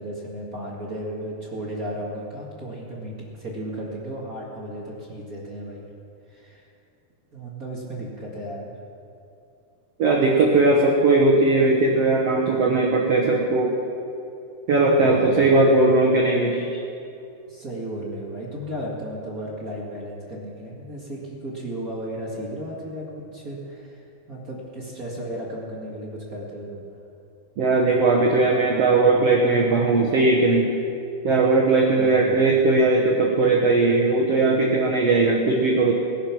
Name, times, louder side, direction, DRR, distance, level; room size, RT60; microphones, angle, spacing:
voice 1, 0.0-5.9 6.3-6.7 7.3-8.7 14.9-15.6 17.5-24.0 24.3-26.8 31.9-32.5, right 1 dB, 35° right, -5 dB, 1.5 m, -34 dB
voice 2, 10.0-13.8 14.7-16.7 27.6-30.7 31.2-35.9, right 3 dB, 90° right, -1 dB, 1.3 m, -19 dB
19.0 x 10.5 x 6.0 m, 2.7 s
omnidirectional pair, 4.6 m